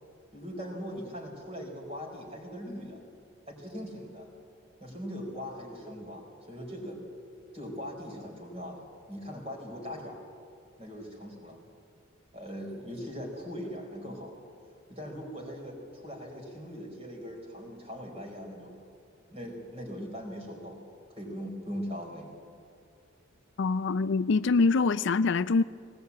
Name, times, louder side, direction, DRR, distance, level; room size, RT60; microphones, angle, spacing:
voice 1, 0.3-3.0 3.5-4.3 4.8-7.0 7.5-10.2 10.8-11.6 12.3-14.4 14.9-18.7 19.3-20.8 21.2-22.3, equal, 30° right, 4.5 m, -40 dB
voice 2, 23.6-25.6, left 4 dB, 65° left, 0.5 m, -24 dB
20.0 x 18.0 x 8.5 m
head